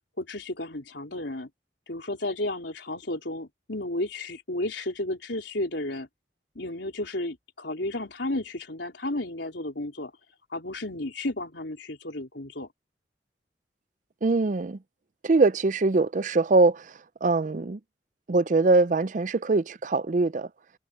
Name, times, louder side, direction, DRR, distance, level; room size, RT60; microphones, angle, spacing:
voice 1, 0.2-1.5 1.9-6.1 6.6-10.1 10.5-12.7, left 1 dB, 80° left, 3.7 m, -33 dB
voice 2, 14.2-14.8 15.2-17.8 18.3-20.5, right 3 dB, 45° right, 0.5 m, -23 dB
head